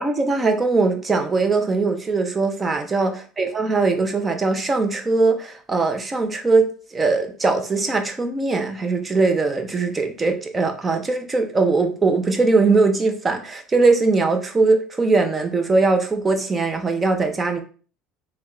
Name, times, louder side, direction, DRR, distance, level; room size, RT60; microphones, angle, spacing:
voice 1, 0.0-17.6, right 3 dB, 20° right, 6 dB, 0.6 m, -20 dB
3.5 x 2.9 x 3.1 m, 0.39 s
cardioid pair, 135°, 0 cm